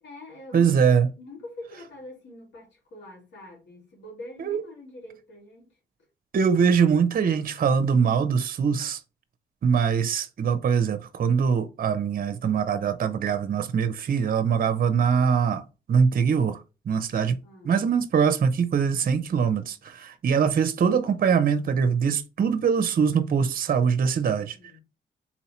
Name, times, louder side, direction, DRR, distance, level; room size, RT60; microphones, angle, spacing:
voice 1, 0.0-0.7 1.2-5.8 17.4-17.8 24.5-24.8, left 2 dB, 75° left, 2.4 m, -44 dB
voice 2, 0.5-1.1 4.4-4.6 6.3-9.0 9.6-16.6 16.9-17.4 17.6-24.6, right 6 dB, 55° right, 0.7 m, -23 dB
4.2 x 2.8 x 4.3 m
supercardioid pair, 55°, 18 cm